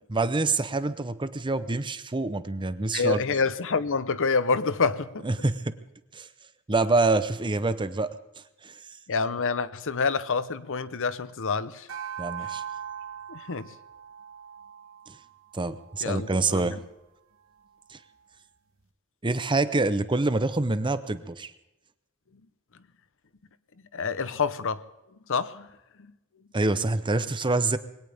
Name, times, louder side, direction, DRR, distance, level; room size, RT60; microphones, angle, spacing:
voice 1, 0.1-3.2 5.2-5.8 6.1-6.3 6.7-8.1 8.6-8.7 12.2-12.6 15.1-15.2 15.5-16.8 17.9-18.0 19.2-21.5 26.5-27.8, right 3 dB, 20° right, 0.8 m, -26 dB
voice 2, 2.9-5.3 9.1-11.9 13.3-13.7 16.0-16.7 23.9-24.8 25.3-25.7, left 4 dB, 60° left, 0.9 m, -27 dB
sound 1, 11.9-16.5, right 9 dB, 70° right, 1.3 m, -40 dB
22.0 x 17.5 x 3.5 m
head